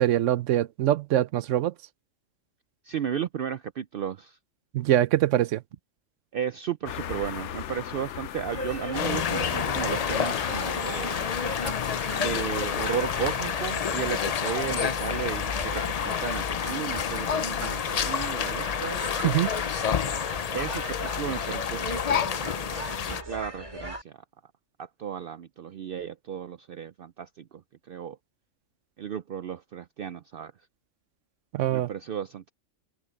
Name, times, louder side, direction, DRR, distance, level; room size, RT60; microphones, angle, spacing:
voice 1, 0.0-1.7 4.7-5.6 19.2-19.5 31.5-31.9, right 13 dB, 80° right, 1.0 m, -23 dB
voice 2, 2.8-4.4 6.3-11.2 12.1-19.0 20.5-22.5 23.3-24.1 24.8-27.6 27.9-28.2 29.0-30.5 31.7-32.5, right 8 dB, 60° right, 0.6 m, -34 dB
sound 1, 6.9-13.3, left 11 dB, 70° left, 1.0 m, -37 dB
sound 2, 8.5-24.0, right 1 dB, 25° right, 2.3 m, -39 dB
sound 3, 8.9-23.2, left 7 dB, 50° left, 0.4 m, -29 dB
open air
omnidirectional pair, 1.3 m